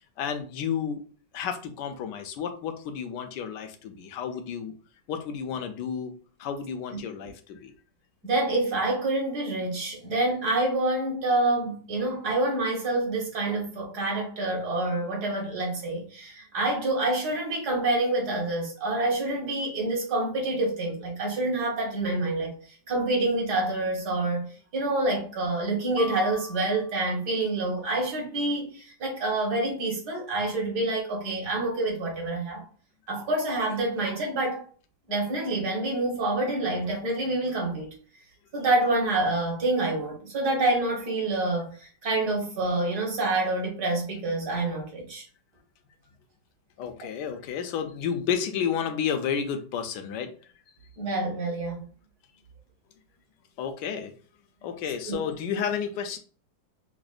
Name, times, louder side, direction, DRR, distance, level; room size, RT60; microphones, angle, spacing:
voice 1, 0.2-1.0 1.3-4.7 5.1-6.1 6.4-7.7 46.8-50.3 53.6-54.1 54.6-56.2, left 7 dB, 80° left, 1.2 m, -31 dB
voice 2, 8.2-24.5 24.7-32.6 33.1-34.6 35.1-37.9 38.5-45.2 51.0-51.8 55.1-55.2, right 2 dB, 65° right, 1.8 m, -27 dB
sound 1, 26.0-27.2, left 3 dB, 40° right, 0.6 m, -39 dB
5.9 x 2.1 x 2.4 m
omnidirectional pair, 1.9 m